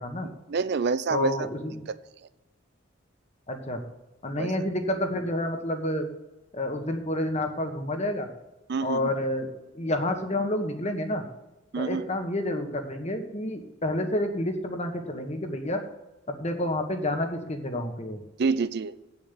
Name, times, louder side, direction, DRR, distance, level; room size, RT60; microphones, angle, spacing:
voice 1, 0.2-1.5 1.9-2.0 4.3-4.5 8.7-9.1 11.7-12.2 18.4-19.0, right 4 dB, 55° right, 14 dB, 0.5 m, -28 dB
voice 2, 1.1-1.8 3.5-3.8 4.2-6.1 6.5-8.3 8.8-11.2 11.8-15.8 16.3-18.2, left 1 dB, 35° left, 6 dB, 1.4 m, -29 dB
8.6 x 7.2 x 8.2 m, 1.0 s
head